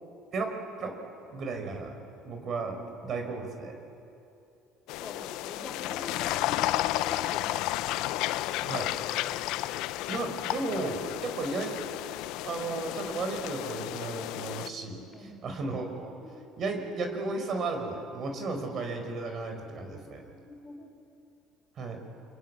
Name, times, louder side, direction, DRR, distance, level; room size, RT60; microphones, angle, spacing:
voice 1, 1.3-2.0 2.2-3.8 8.6-8.9 10.1-11.8 12.4-15.0 15.4-16.1 16.6-20.2 21.8-22.0, right 3 dB, 50° right, 5 dB, 4.9 m, -34 dB
sound 1, 4.9-14.7, left 16 dB, 75° left, 0.6 m, -32 dB
voice 2, 5.0-7.7 8.6-8.8 12.4-12.6 15.1-15.5 16.2-16.3 19.9-20.9, left 2 dB, 25° left, 2 dB, 6.2 m, -45 dB
25.5 x 22.0 x 9.8 m, 2.6 s
supercardioid pair, 90°, 0 cm